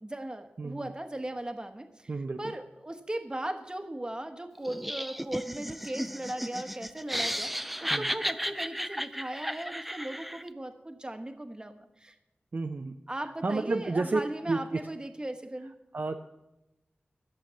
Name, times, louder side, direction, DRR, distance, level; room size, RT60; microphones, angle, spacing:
voice 1, 0.0-2.1 2.4-12.2 13.1-15.7, right 1 dB, 20° right, 6 dB, 1.2 m, -38 dB
voice 2, 0.6-0.9 2.1-2.5 7.9-8.1 12.5-13.0 13.4-14.2 14.5-14.8 15.9-16.2, right 3 dB, 55° right, 4 dB, 0.6 m, -31 dB
Laughter, 4.6-10.5, equal, 5° right, 0.4 m, -34 dB
12.0 x 6.9 x 7.6 m, 0.94 s
wide cardioid pair, 80°, 4 cm